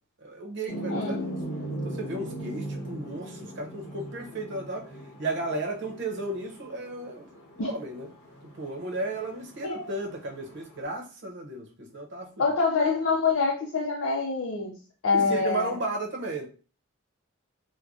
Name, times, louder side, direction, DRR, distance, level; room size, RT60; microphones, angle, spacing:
voice 1, 0.2-1.2 1.8-4.9 5.2-7.3 7.6-8.1 8.6-12.4 15.1-16.5, right 2 dB, 60° right, 0.7 m, -34 dB
sound 1, 0.7-10.8, right 1 dB, 55° left, 1.0 m, -39 dB
voice 2, 0.9-1.3 7.6-7.7 9.6-9.8 12.4-14.7 15.0-15.7, left 4 dB, 75° left, 0.5 m, -25 dB
4.6 x 2.1 x 2.6 m
head